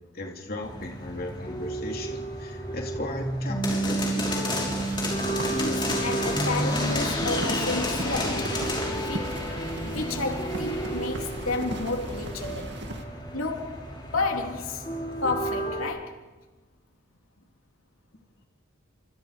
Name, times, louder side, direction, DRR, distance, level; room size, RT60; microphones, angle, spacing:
voice 1, 0.1-4.3, left 1 dB, 45° left, 3.4 m, -37 dB
sound 1, 0.6-15.8, equal, 20° left, 6.4 m, -30 dB
sound 2, 4.7-13.0, right 1 dB, 55° right, 2.2 m, -39 dB
voice 2, 5.3-9.6 9.8-12.8 13.3-13.8 14.1-14.9 15.2-16.2, left 3 dB, 85° left, 3.1 m, -32 dB
30.0 x 27.0 x 5.2 m
head